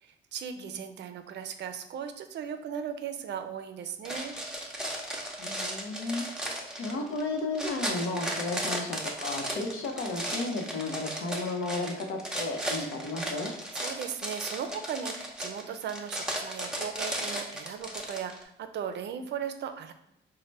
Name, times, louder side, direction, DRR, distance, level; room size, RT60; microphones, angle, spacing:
voice 1, 0.0-4.4 13.7-19.9, right 8 dB, 60° right, 8 dB, 0.4 m, -37 dB
sound 1, 4.0-18.4, right 1 dB, 5° right, 0.6 m, -35 dB
voice 2, 5.4-6.2 6.8-13.5, left 2 dB, 85° left, 2 dB, 0.7 m, -33 dB
4.0 x 2.1 x 3.2 m, 0.81 s
cardioid pair, 90°, 20 cm